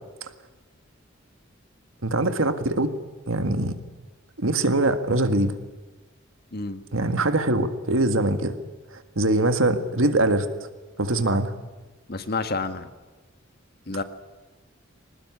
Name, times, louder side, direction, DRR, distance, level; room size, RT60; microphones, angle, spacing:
voice 1, 2.0-2.9 3.3-3.7 4.4-5.6 6.9-8.6 9.2-10.5 11.0-11.5, right 2 dB, 90° right, 9 dB, 1.8 m, -22 dB
voice 2, 6.5-6.8 12.1-12.9 13.9-14.0, left 3 dB, 50° left, 9 dB, 1.6 m, -29 dB
22.0 x 19.0 x 9.7 m, 1.2 s
head